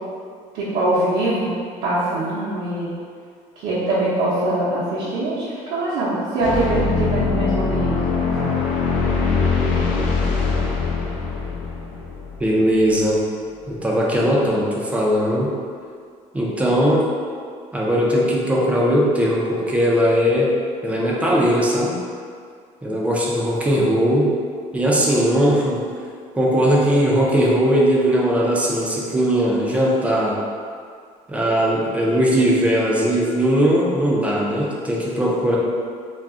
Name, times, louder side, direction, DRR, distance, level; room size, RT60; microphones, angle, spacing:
voice 1, 0.5-1.5 1.8-2.9 3.6-5.4 5.7-8.5, right 1 dB, 70° right, -10 dB, 0.7 m, -23 dB
sound 1, 6.4-13.1, left 4 dB, 80° left, 0.4 m, -22 dB
voice 2, 12.4-13.2 13.7-15.5 16.3-17.0 17.7-20.5 20.8-21.9 22.8-24.3 24.7-25.8 26.3-30.4 31.3-35.6, equal, 10° right, -4 dB, 0.4 m, -19 dB
2.4 x 2.0 x 3.5 m, 2.1 s
cardioid pair, 145°, 14 cm